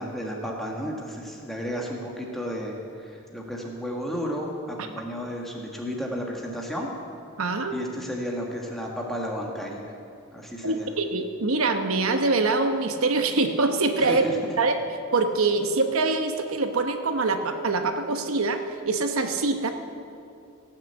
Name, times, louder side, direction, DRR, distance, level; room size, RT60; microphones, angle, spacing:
voice 1, 0.0-6.9 7.7-9.8 10.3-10.9 14.0-14.5, equal, ahead, -1 dB, 1.5 m, -33 dB
voice 2, 7.4-7.8 10.6-14.2 14.6-14.7 15.1-19.7, right 3 dB, 90° right, 6 dB, 1.0 m, -24 dB
17.0 x 6.6 x 7.9 m, 2.5 s
head